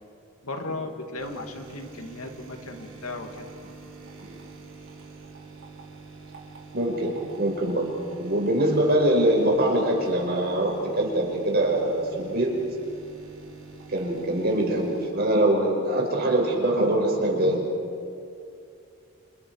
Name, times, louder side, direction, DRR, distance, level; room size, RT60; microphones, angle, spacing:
voice 1, 0.4-3.5, left 2 dB, 85° left, 4 dB, 2.5 m, -36 dB
sound 1, 1.2-15.1, right 3 dB, 65° right, 3.7 m, -45 dB
voice 2, 6.7-7.9 8.2-12.6 13.9-17.6, right 1 dB, 45° right, 0 dB, 5.5 m, -23 dB
29.5 x 28.5 x 4.8 m, 2.5 s
head